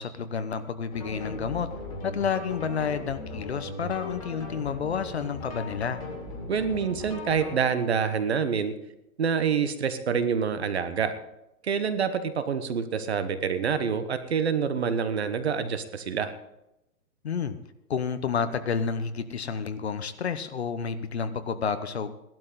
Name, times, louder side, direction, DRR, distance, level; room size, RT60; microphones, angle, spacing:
voice 1, 0.0-1.7 2.0-6.0 17.2-17.6 17.9-22.1, left 6 dB, 45° left, 12 dB, 0.9 m, -30 dB
sound 1, 0.9-7.6, left 2 dB, 25° left, 2.2 m, -38 dB
voice 2, 6.5-8.7 9.2-11.1 11.6-16.3, right 6 dB, 45° right, 11 dB, 1.1 m, -27 dB
16.5 x 12.0 x 3.9 m, 0.88 s
hypercardioid pair, 180°, 44 cm